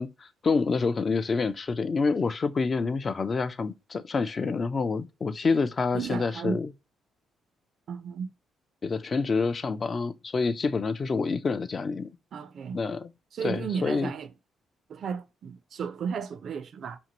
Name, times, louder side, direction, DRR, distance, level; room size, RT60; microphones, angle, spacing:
voice 1, 0.0-6.7 8.8-12.1 12.7-13.1 13.4-14.1, left 4 dB, 40° left, 0.3 m, -27 dB
voice 2, 5.9-6.6 7.9-8.3 12.3-12.8 13.3-14.3 14.9-17.0, right 6 dB, 60° right, 0.4 m, -34 dB
2.7 x 2.5 x 2.8 m
cardioid pair, 90°, 0 cm